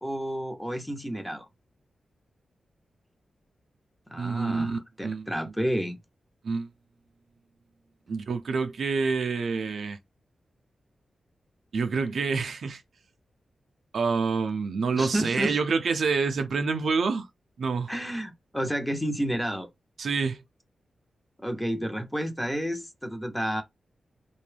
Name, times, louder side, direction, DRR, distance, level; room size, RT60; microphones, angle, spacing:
voice 1, 0.0-1.5 4.1-6.0 15.0-15.6 17.9-19.7 21.4-23.6, equal, 5° left, 0.6 m, -30 dB
voice 2, 4.2-5.3 6.4-6.7 8.1-10.0 11.7-12.8 13.9-17.3 17.6-17.9 20.0-20.4, right 4 dB, 70° right, 0.4 m, -27 dB
2.6 x 2.2 x 3.2 m
wide cardioid pair, 130°, 0 cm